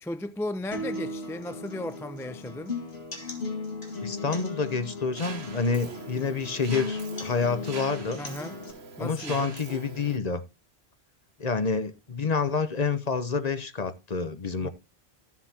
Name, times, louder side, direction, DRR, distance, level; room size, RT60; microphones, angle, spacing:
voice 1, 0.0-2.8 8.2-8.6 9.0-9.5 14.6-14.7, left 1 dB, 5° left, 0.4 m, -35 dB
sound 1, 0.7-8.7, left 3 dB, 75° left, 2.4 m, -36 dB
voice 2, 4.0-8.2 9.0-10.4 11.4-14.7, left 5 dB, 40° left, 0.9 m, -28 dB
Mechanisms, 5.2-10.2, right 5 dB, 85° right, 1.5 m, -43 dB
13.5 x 7.2 x 2.8 m
omnidirectional pair, 1.1 m